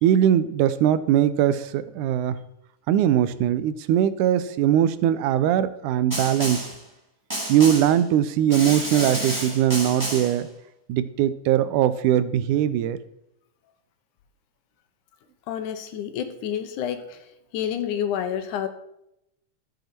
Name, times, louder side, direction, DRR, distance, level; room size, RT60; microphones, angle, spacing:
voice 1, 0.0-2.4 2.9-6.7 7.5-10.5 10.9-13.0, right 10 dB, 85° right, 14 dB, 2.1 m, -21 dB
Snare drum, 6.1-6.8 7.3-8.0 8.5-10.4, right 1 dB, 5° right, 2.4 m, -30 dB
voice 2, 15.5-17.2 17.5-18.7, left 9 dB, 80° left, 9 dB, 2.4 m, -29 dB
13.0 x 7.9 x 4.4 m, 0.80 s
omnidirectional pair, 3.6 m